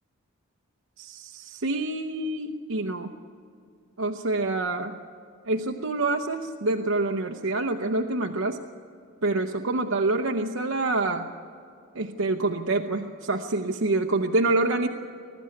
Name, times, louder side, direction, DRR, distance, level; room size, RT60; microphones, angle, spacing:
voice 1, 1.0-3.1 4.0-5.0 5.5-8.6 9.2-11.3 11.9-14.9, right 2 dB, 70° right, 3 dB, 0.8 m, -26 dB
21.5 x 12.5 x 9.8 m, 2.4 s
head